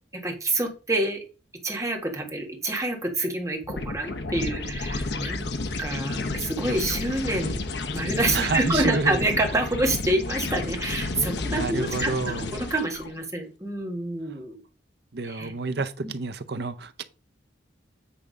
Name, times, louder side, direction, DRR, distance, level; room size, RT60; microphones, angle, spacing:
voice 1, 0.1-1.2 1.6-5.5 5.8-7.6 7.9-12.1 12.4-14.6 15.2-15.5, right 2 dB, 15° right, 1.6 m, -27 dB
sound 1, 3.6-13.1, left 2 dB, 65° left, 0.8 m, -31 dB
voice 2, 8.3-9.3 11.5-12.5 15.1-17.0, right 4 dB, 60° right, 0.6 m, -29 dB
8.5 x 3.6 x 5.2 m
head